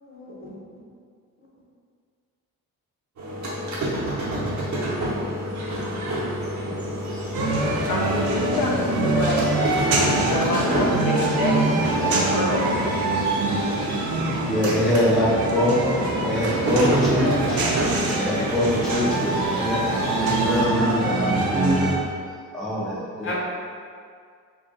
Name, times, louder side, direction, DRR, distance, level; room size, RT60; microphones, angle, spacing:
voice 1, 0.0-0.5 6.7-6.8 23.2-23.4, left 2 dB, 40° left, -5 dB, 0.9 m, -34 dB
sound 1, 3.2-15.1 15.4-20.7, right 1 dB, 55° right, 0.8 m, -29 dB
sound 2, 7.3-21.9, right 2 dB, 85° right, 0.6 m, -24 dB
voice 2, 7.9-9.5 10.2-12.8, left 2 dB, 75° left, -2 dB, 0.6 m, -26 dB
voice 3, 14.5-21.9 22.5-23.4, left 1 dB, ahead, -6 dB, 0.4 m, -24 dB
2.7 x 2.3 x 3.8 m, 2.1 s
cardioid pair, 115°, 34 cm